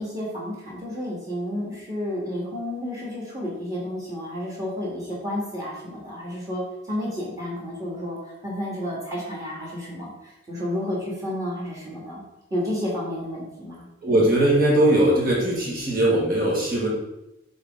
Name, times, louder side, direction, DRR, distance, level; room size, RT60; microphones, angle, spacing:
voice 1, 0.0-12.2 12.5-13.9, left 1 dB, 15° right, -5 dB, 1.8 m, -31 dB
voice 2, 14.0-16.9, right 1 dB, 45° right, -5 dB, 1.7 m, -20 dB
6.3 x 4.0 x 3.7 m, 0.91 s
head